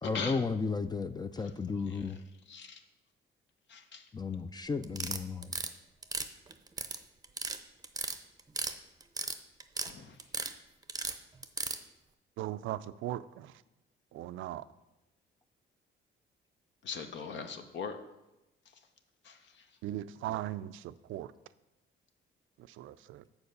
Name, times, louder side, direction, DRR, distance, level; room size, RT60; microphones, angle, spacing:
voice 1, 0.0-2.2 4.1-5.5, left 4 dB, 20° left, 11 dB, 0.4 m, -34 dB
voice 2, 2.5-2.8 3.7-4.0 9.9-10.1 16.8-18.0 19.3-19.4, left 6 dB, 65° left, 7 dB, 0.9 m, -39 dB
sound 1, 4.8-5.7 6.0-7.0 7.2-7.6 7.8-8.7 9.0-9.9 10.2-10.5 10.9-11.8, right 4 dB, 20° right, 0.6 m, -35 dB
voice 3, 12.4-13.6 14.1-14.7 19.8-21.3 22.6-23.2, right 13 dB, 80° right, 15 dB, 0.4 m, -39 dB
7.1 x 4.6 x 6.5 m, 0.98 s
cardioid pair, 90°, 20 cm